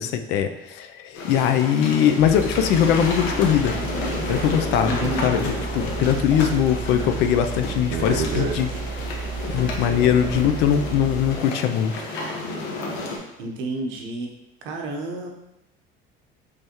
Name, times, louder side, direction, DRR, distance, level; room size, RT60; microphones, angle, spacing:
voice 1, 0.0-3.8 4.3-8.7 9.5-11.9, left 9 dB, 60° left, 7 dB, 0.4 m, -21 dB
sound 1, 1.1-13.2, left 2 dB, 80° left, 1.0 m, -31 dB
sound 2, 2.2-11.3, right 4 dB, 45° right, 0.5 m, -31 dB
voice 2, 4.8-5.4 13.4-14.3 14.6-15.3, right 2 dB, 70° right, 2 dB, 0.9 m, -30 dB
5.4 x 3.3 x 2.9 m, 0.88 s
cardioid pair, 180°, 20 cm